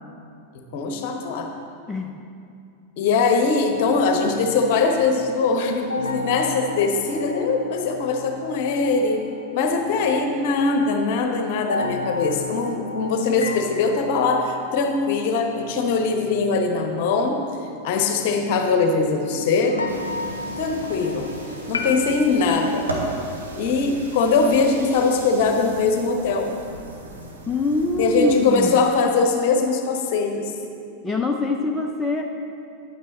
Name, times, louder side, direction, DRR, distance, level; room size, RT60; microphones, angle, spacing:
voice 1, 0.5-1.5 3.0-9.2 9.5-17.4 17.8-19.8 20.6-21.3 21.7-22.9 23.6-26.5 28.0-30.5, left 4 dB, 50° left, 4 dB, 1.0 m, -21 dB
sound 1, 3.7-10.9 11.6-19.3 19.6-22.1, left 3 dB, 80° left, 0.6 m, -35 dB
sound 2, 19.9-28.7, right 2 dB, 75° right, 1.4 m, -36 dB
voice 2, 27.5-28.8 31.0-32.2, left 3 dB, 10° left, 1 dB, 0.6 m, -23 dB
10.5 x 8.7 x 4.0 m, 2.5 s
figure-of-eight pair, 90°, 0 cm